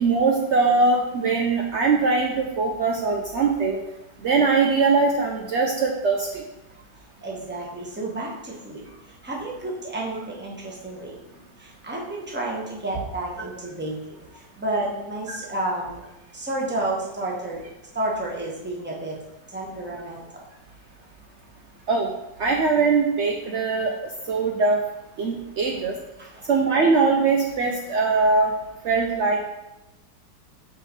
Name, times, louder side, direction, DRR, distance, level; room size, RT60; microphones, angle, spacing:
voice 1, 0.0-3.8 4.2-6.4 21.9-22.1 22.4-23.9 24.3-24.8 25.2-25.9 26.5-28.5 28.8-29.4, right 4 dB, 80° right, 0 dB, 0.6 m, -21 dB
voice 2, 7.2-8.8 9.2-11.1 11.8-13.9 14.6-16.0 16.3-17.6 17.9-19.1 19.5-20.2 26.2-26.3, right 2 dB, 10° right, -3 dB, 0.9 m, -30 dB
5.4 x 3.8 x 5.4 m, 0.95 s
omnidirectional pair, 1.9 m